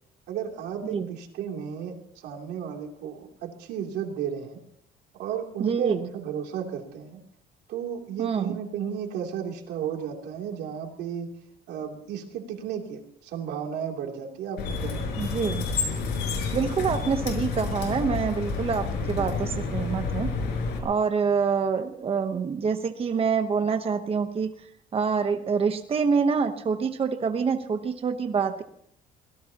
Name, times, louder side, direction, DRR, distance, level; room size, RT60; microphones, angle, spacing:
voice 1, 0.3-4.6 5.1-7.2 7.7-11.3 11.7-15.4 18.9-19.3, right 8 dB, 80° right, 1 dB, 3.1 m, -34 dB
voice 2, 5.6-6.1 8.2-8.6 15.1-15.7 16.5-20.3 20.8-24.7 24.9-28.6, right 5 dB, 35° right, 7 dB, 1.0 m, -26 dB
sound 1, 14.6-20.8, left 4 dB, 75° left, 5.8 m, -29 dB
23.5 x 17.5 x 3.0 m, 0.69 s
cardioid pair, 110°, 17 cm